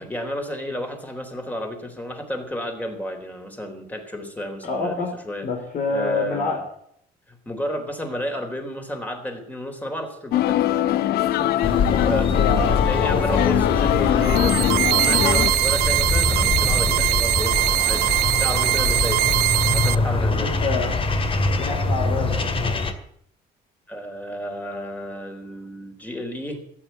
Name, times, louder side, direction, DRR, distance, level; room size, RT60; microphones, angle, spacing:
voice 1, 0.0-5.5 5.9-6.6 7.3-12.3 12.6-18.1 18.3-19.2 19.7-20.5 23.9-26.6, equal, 10° left, 4 dB, 3.9 m, -32 dB
voice 2, 4.6-5.1 5.4-6.6 11.9-13.6 18.7-18.8 20.3-20.9 21.5-22.8, left 4 dB, 55° left, 1 dB, 3.8 m, -27 dB
sound 1, 10.3-15.5, left 13 dB, 70° left, 0.7 m, -22 dB
sound 2, 11.6-22.9, left 3 dB, 35° left, 2.1 m, -24 dB
sound 3, 14.2-19.9, right 17 dB, 75° right, 0.5 m, -21 dB
14.0 x 9.8 x 9.4 m, 0.68 s
cardioid pair, 110°, 17 cm